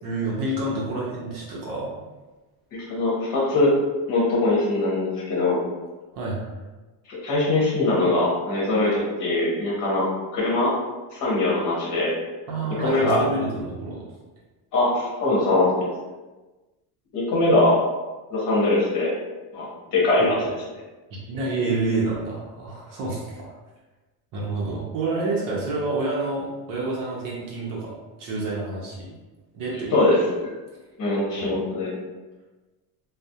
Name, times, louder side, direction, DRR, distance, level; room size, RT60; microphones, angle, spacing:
voice 1, 0.0-1.9 6.1-6.6 12.5-14.0 20.2-20.5 21.1-23.5 24.3-29.1 29.5-29.9 30.7-30.8 31.4-31.6, right 2 dB, 50° right, -4 dB, 0.6 m, -28 dB
voice 2, 2.7-3.7 4.1-5.6 7.1-10.7 11.1-12.1 12.8-13.2 14.7-15.7 17.1-17.8 18.3-19.1 19.5-20.3 29.9-30.2 31.0-31.9, left 2 dB, 45° left, -5 dB, 0.9 m, -22 dB
2.3 x 2.0 x 2.7 m, 1.2 s
cardioid pair, 180°, 42 cm